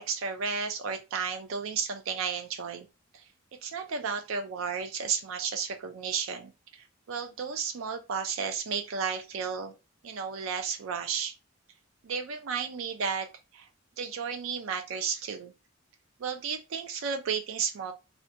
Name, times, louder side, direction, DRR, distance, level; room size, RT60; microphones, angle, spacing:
voice 1, 0.0-2.9 3.1-3.2 3.6-9.7 10.0-11.4 12.0-13.3 13.5-13.7 14.0-15.5 16.2-17.9, right 6 dB, 75° right, 0.4 m, -33 dB
2.5 x 2.1 x 2.6 m
head